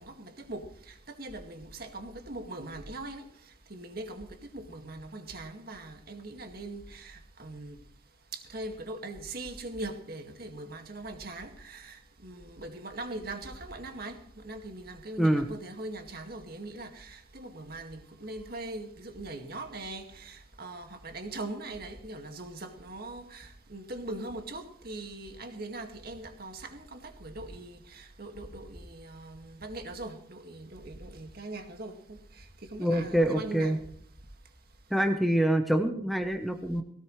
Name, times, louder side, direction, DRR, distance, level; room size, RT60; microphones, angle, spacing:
voice 1, 0.0-3.3 3.7-7.8 8.3-33.8, right 2 dB, 50° right, 5 dB, 2.1 m, -41 dB
voice 2, 32.8-33.8 34.9-36.8, right 1 dB, ahead, 4 dB, 1.0 m, -26 dB
18.0 x 17.5 x 3.3 m, 0.64 s
head